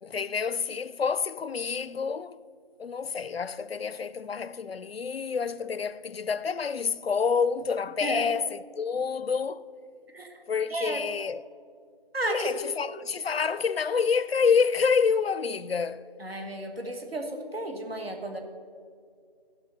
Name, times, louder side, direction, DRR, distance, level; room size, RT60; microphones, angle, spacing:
voice 1, 0.0-2.4 2.8-9.6 10.5-11.4 12.3-16.1, left 5 dB, 85° left, 0.5 m, -28 dB
voice 2, 12.1-12.5 16.2-18.4, right 1 dB, 85° right, 1.8 m, -33 dB
14.5 x 5.6 x 5.6 m
figure-of-eight pair, 175°, 30 cm